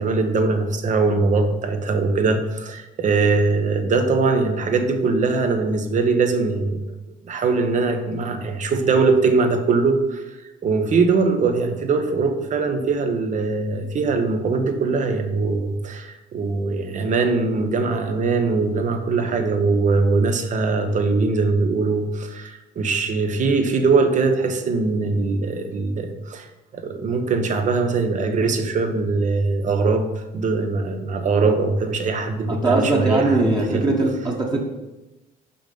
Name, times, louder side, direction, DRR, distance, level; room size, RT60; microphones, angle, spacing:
voice 1, 0.0-6.8 7.3-10.2 10.6-26.5 26.7-33.9, right 4 dB, 45° right, 6 dB, 1.0 m, -21 dB
voice 2, 32.5-34.6, right 2 dB, 25° right, -1 dB, 1.4 m, -20 dB
5.6 x 5.4 x 5.2 m, 1.0 s
cardioid pair, 110°, 17 cm